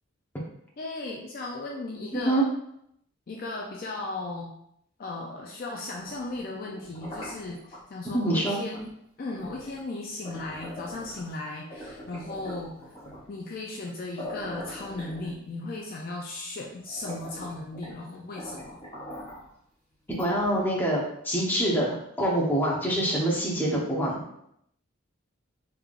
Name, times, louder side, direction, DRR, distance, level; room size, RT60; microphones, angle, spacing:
voice 1, 0.8-2.5 3.3-4.5 5.0-8.9 9.2-12.9 13.3-18.8, left 2 dB, 45° left, -1 dB, 0.4 m, -36 dB
voice 2, 2.1-2.4 8.1-8.6 20.2-24.2, right 1 dB, 10° left, -5 dB, 0.7 m, -25 dB
sound 1, 5.7-7.8 8.7-8.9 9.3-11.4 11.7-13.3 13.9-14.0 14.2-15.7 16.3-16.4 16.8-18.0 18.4-19.5 20.1-20.9, equal, 30° left, 1.1 m, -42 dB
3.5 x 3.4 x 2.4 m, 0.74 s
head